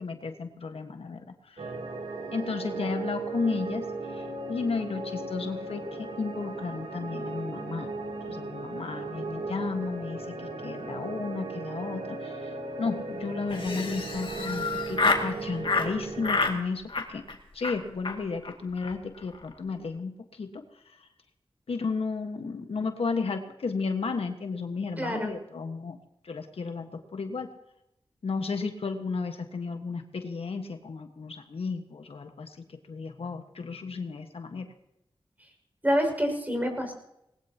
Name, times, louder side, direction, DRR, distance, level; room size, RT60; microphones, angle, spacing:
voice 1, 0.0-1.7 2.3-3.8 4.1-7.9 8.2-17.2 17.5-20.6 21.7-26.0 26.2-27.5 28.2-32.6 32.9-34.7, left 4 dB, 85° left, 6 dB, 1.5 m, -33 dB
sound 1, 1.6-16.5, right 3 dB, 85° right, 2.9 m, -36 dB
Laughter, 13.5-15.3 15.6-15.9 16.2-16.6 16.9-17.3 17.6-17.8 18.0-18.2 18.4-18.5 18.8-18.9 19.2-19.5, left 3 dB, 60° left, 2.3 m, -28 dB
voice 2, 25.0-25.3 35.8-36.9, equal, 15° right, 4 dB, 5.8 m, -27 dB
20.5 x 19.5 x 2.9 m, 0.83 s
cardioid pair, 50°, 10 cm